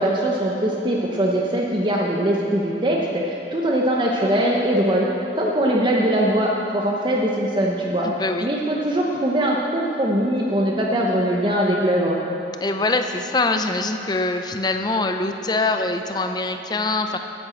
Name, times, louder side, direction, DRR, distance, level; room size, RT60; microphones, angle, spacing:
voice 1, 0.0-5.1 5.4-8.1 8.4-12.2, right 1 dB, 25° right, -2 dB, 0.9 m, -21 dB
voice 2, 8.0-8.5 12.6-17.2, left 2 dB, 25° left, 6 dB, 0.5 m, -23 dB
9.5 x 8.9 x 7.6 m, 2.9 s
head